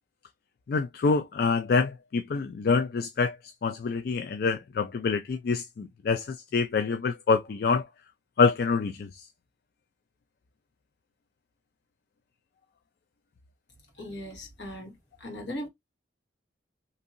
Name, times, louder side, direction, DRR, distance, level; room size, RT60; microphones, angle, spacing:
voice 1, 0.7-7.9 8.4-9.3, left 4 dB, 50° left, 0.3 m, -26 dB
voice 2, 14.0-15.7, left 1 dB, 70° left, 1.5 m, -39 dB
2.8 x 2.6 x 2.5 m
head